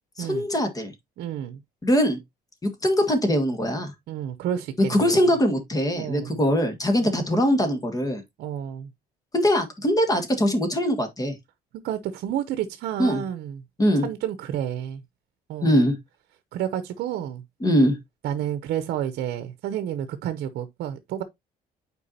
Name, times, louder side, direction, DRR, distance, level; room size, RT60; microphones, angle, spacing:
voice 1, 0.2-0.9 1.8-2.2 2.6-3.9 4.9-8.2 9.3-11.4 13.0-13.2 13.8-14.1 15.6-16.0 17.6-18.0, equal, 20° left, 1.7 m, -22 dB
voice 2, 1.2-1.6 4.1-5.3 6.0-6.4 7.0-7.2 8.4-8.9 11.8-13.6 14.0-15.0 15.5-15.8 16.5-17.4 18.2-21.2, right 10 dB, 75° right, 0.7 m, -30 dB
8.3 x 4.6 x 2.7 m
cardioid pair, 110°, 17 cm